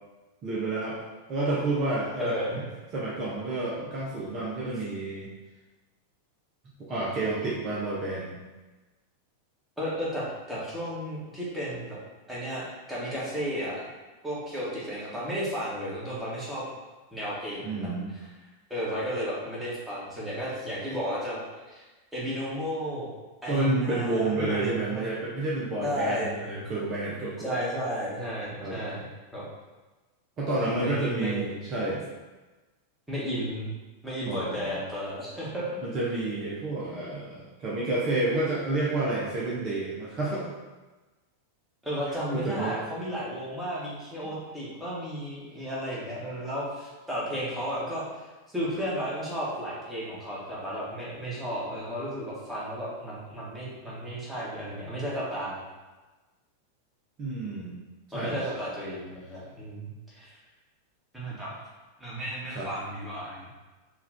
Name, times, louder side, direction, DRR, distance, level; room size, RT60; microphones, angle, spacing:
voice 1, 0.4-1.0 1.3-2.4 2.9-5.3 6.8-8.4 17.6-18.1 23.5-27.5 28.6-28.8 30.4-32.0 34.2-34.7 35.8-40.4 42.3-42.8 57.2-57.7 58.1-58.4 62.5-62.7, right 2 dB, 35° right, -6 dB, 0.9 m, -29 dB
voice 2, 2.2-2.6 3.8-3.9 9.8-12.0 12.3-13.8 14.2-16.6 17.1-18.2 18.7-21.8 22.1-23.1 23.4-25.1 25.8-26.7 27.4-29.0 29.3-29.5 30.6-31.4 33.1-33.7 34.0-35.7 41.8-55.6 58.1-60.4 61.1-61.5 62.0-63.5, equal, 5° right, -7 dB, 1.4 m, -33 dB
4.7 x 2.6 x 3.5 m, 1.2 s
figure-of-eight pair, 90°, 0 cm